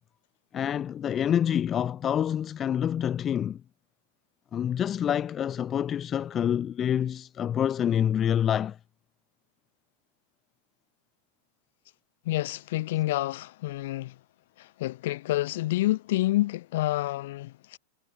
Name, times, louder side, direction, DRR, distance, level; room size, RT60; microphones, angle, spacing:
voice 1, 0.5-3.6 4.5-8.8, left 9 dB, 25° left, 0.7 m, -27 dB
voice 2, 12.2-14.1 14.6-17.8, left 16 dB, 55° left, 3.2 m, -28 dB
figure-of-eight pair, 90°, 0 cm